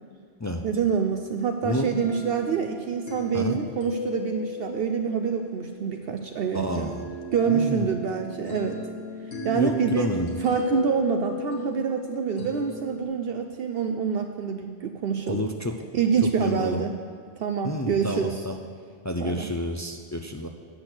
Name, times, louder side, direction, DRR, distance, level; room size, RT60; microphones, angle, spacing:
voice 1, 0.6-6.9 7.3-8.8 9.4-10.1 10.4-15.4 15.9-16.9 17.4-18.5 19.2-19.5, right 6 dB, 65° right, 5 dB, 0.7 m, -26 dB
voice 2, 1.6-2.0 3.3-3.6 6.5-7.0 7.5-7.9 9.5-10.4 15.3-15.8 16.4-16.8 17.6-18.6 19.0-20.5, left 1 dB, 30° left, 4 dB, 0.3 m, -29 dB
sound 1, 2.0-13.0, left 3 dB, 70° left, 1.9 m, -36 dB
8.8 x 6.0 x 7.9 m, 2.1 s
omnidirectional pair, 1.2 m